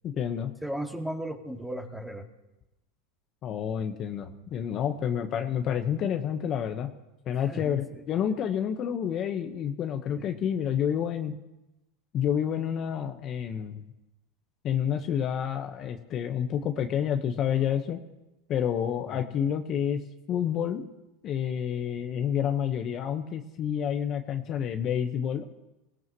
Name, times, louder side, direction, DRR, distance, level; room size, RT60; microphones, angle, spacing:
voice 1, 0.0-0.5 3.4-6.9 7.2-11.3 12.1-13.8 14.6-18.0 18.5-20.0 20.3-20.9 21.2-25.4, left 9 dB, 40° left, 6 dB, 1.2 m, -29 dB
voice 2, 0.6-2.3 7.3-8.0 10.1-10.3 19.1-19.2, right 1 dB, 5° right, 3 dB, 2.0 m, -36 dB
26.0 x 16.5 x 3.1 m, 0.98 s
hypercardioid pair, 105°, 0 cm